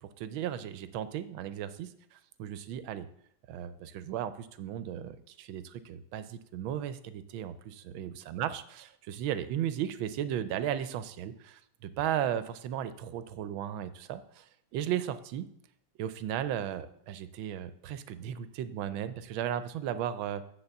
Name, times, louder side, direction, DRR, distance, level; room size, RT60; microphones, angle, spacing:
voice 1, 0.0-3.1 3.5-8.6 9.0-15.5 16.0-20.4, right 10 dB, 85° right, 12 dB, 1.4 m, -35 dB
9.0 x 4.1 x 7.0 m, 0.69 s
omnidirectional pair, 2.1 m